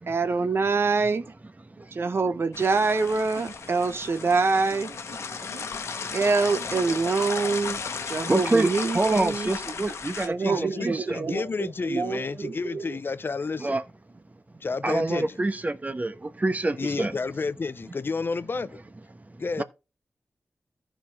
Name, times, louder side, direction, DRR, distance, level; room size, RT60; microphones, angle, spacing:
voice 1, 0.1-1.3 1.9-5.2 5.5-5.6 6.1-7.8 8.0-9.5 10.2-13.0, right 4 dB, 60° right, 0.9 m, -25 dB
voice 2, 1.7-2.0 5.2-6.2 7.8-11.2 13.6-13.8 14.8-17.2 19.2-19.6, right 2 dB, 35° right, 1.1 m, -28 dB
sound 1, 2.5-10.3, left 5 dB, 85° left, 0.9 m, -35 dB
voice 3, 10.4-13.8 14.6-15.4 16.8-18.8 19.4-19.6, left 4 dB, 55° left, 0.5 m, -31 dB
14.5 x 5.1 x 3.5 m
cardioid pair, 50°, 5 cm